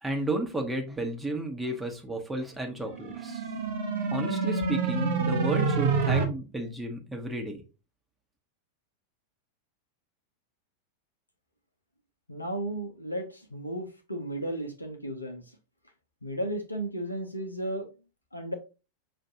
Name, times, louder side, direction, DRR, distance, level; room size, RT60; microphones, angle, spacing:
voice 1, 0.0-3.4 4.0-7.6, right 1 dB, 5° right, 1.0 m, -33 dB
sound 1, 2.9-6.2, right 4 dB, 55° right, 0.8 m, -27 dB
voice 2, 12.3-15.4 16.2-17.9 18.3-18.5, right 1 dB, 85° left, 0.7 m, -34 dB
6.0 x 2.5 x 2.7 m
figure-of-eight pair, 90°, 0 cm